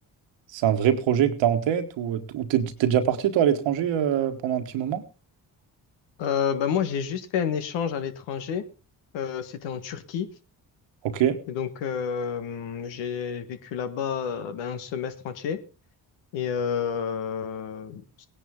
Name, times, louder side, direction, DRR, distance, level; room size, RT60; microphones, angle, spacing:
voice 1, 0.5-5.0 11.0-11.4, right 10 dB, 85° right, 8 dB, 1.5 m, -23 dB
voice 2, 6.2-8.6 9.1-10.3 11.5-15.6 16.3-18.3, left 7 dB, 90° left, 9 dB, 1.5 m, -29 dB
17.5 x 10.0 x 3.7 m, 0.33 s
supercardioid pair, 55°, 43 cm